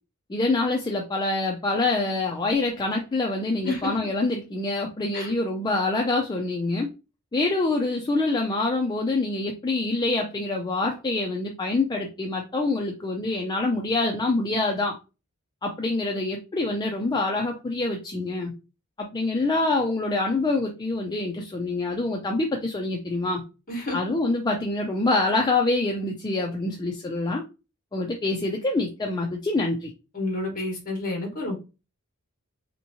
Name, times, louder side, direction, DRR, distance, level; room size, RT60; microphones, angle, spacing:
voice 1, 0.3-6.9 7.3-15.0 15.6-18.5 19.0-23.4 23.9-27.4 27.9-29.9, left 2 dB, 20° left, 0.4 m, -26 dB
voice 2, 3.6-3.9 5.1-5.3 23.7-24.0 30.1-31.6, left 2 dB, 40° left, 1.4 m, -29 dB
3.4 x 2.9 x 2.7 m
head